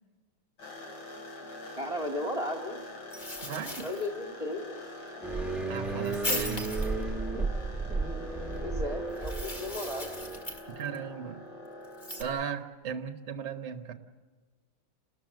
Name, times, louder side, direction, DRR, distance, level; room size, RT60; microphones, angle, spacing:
sound 1, 0.6-12.4, left 1 dB, 70° left, 3.7 m, -45 dB
voice 1, 1.7-2.8 3.8-4.8 8.6-10.1, left 1 dB, 15° right, 3 dB, 1.5 m, -35 dB
sound 2, 3.1-4.1 6.0-6.9 9.1-11.0 11.8-12.2, left 1 dB, 25° left, 1.8 m, -37 dB
voice 2, 3.4-3.8 5.7-6.7 10.7-11.4 12.2-13.9, right 7 dB, 40° right, 8 dB, 1.1 m, -36 dB
sound 3, 5.2-10.6, right 3 dB, ahead, 0.6 m, -34 dB
29.5 x 13.0 x 7.7 m, 1.4 s
omnidirectional pair, 2.4 m